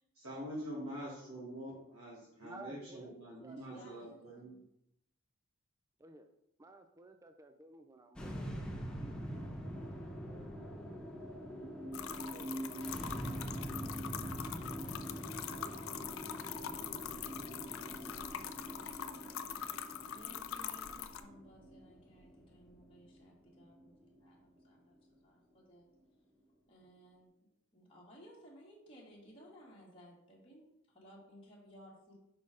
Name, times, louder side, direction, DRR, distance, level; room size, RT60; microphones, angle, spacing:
voice 1, 0.1-4.5, equal, 75° right, -6 dB, 1.9 m, -45 dB
voice 2, 2.4-4.1 6.0-6.3 6.6-9.4 10.2-11.1 12.0-14.0, right 2 dB, 15° right, 6 dB, 0.3 m, -56 dB
voice 3, 3.6-4.6 17.8-19.0 20.0-25.0 25.2-25.9 26.7-27.3 27.7-32.2, equal, 25° left, -5 dB, 1.5 m, -59 dB
sound 1, 8.2-24.6, equal, 5° left, 0.8 m, -44 dB
sound 2, 11.9-21.2, left 9 dB, 70° left, 0.4 m, -44 dB
5.5 x 4.1 x 4.9 m, 0.81 s
head